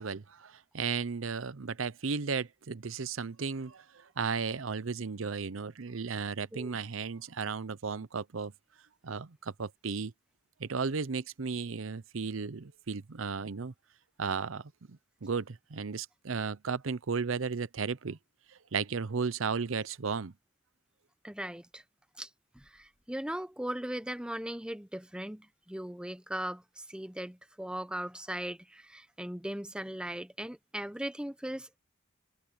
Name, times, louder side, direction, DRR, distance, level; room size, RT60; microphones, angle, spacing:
voice 1, 0.0-8.5 9.0-10.1 10.6-13.7 14.2-18.2 18.7-20.3, right 5 dB, 80° right, 0.7 m, -34 dB
voice 2, 21.2-21.8 22.2-22.3 22.5-31.8, right 1 dB, 5° right, 0.7 m, -38 dB
head